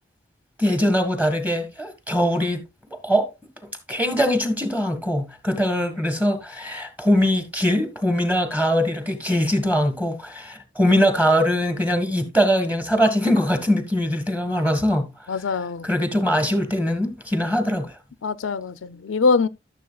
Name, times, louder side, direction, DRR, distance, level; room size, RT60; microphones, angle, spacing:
voice 1, 0.6-2.6 2.9-3.3 3.9-15.1 15.8-17.9, equal, 10° right, 1.6 m, -22 dB
voice 2, 15.3-15.9 18.2-19.5, left 4 dB, 85° left, 0.5 m, -23 dB
13.5 x 7.0 x 2.3 m
head